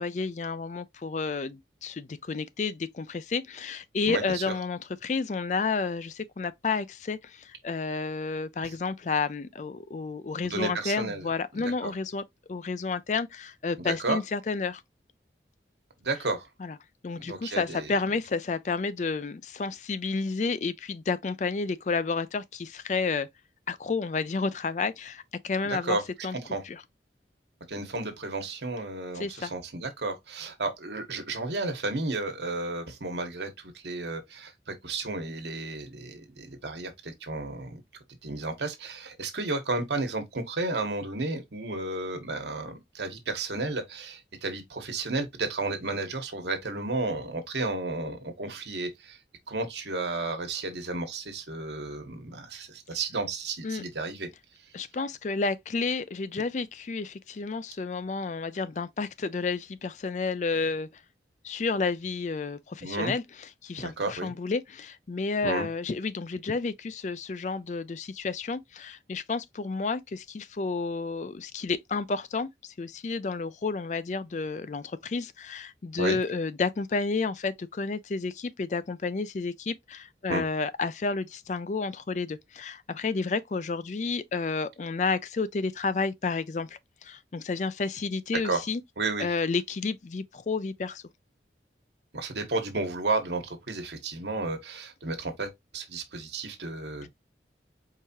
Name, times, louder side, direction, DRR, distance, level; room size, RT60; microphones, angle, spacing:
voice 1, 0.0-12.2 12.5-14.8 16.6-16.8 17.0-23.3 23.7-26.4 26.6-26.8 29.2-29.5 53.6-53.8 54.7-60.9 61.4-63.2 63.6-88.8 89.2-91.0, left 4 dB, 40° left, 0.4 m, -31 dB
voice 2, 4.1-4.4 8.6-8.7 10.4-11.3 11.5-11.9 13.8-14.2 16.0-16.5 17.2-17.9 25.6-26.0 26.4-26.6 27.7-37.8 38.2-49.2 49.5-54.3 62.8-63.1 63.8-64.3 65.4-65.7 76.0-76.2 80.3-80.4 88.4-88.6 89.0-89.3 92.1-97.1, right 3 dB, 75° right, 1.3 m, -32 dB
4.7 x 3.4 x 2.8 m
head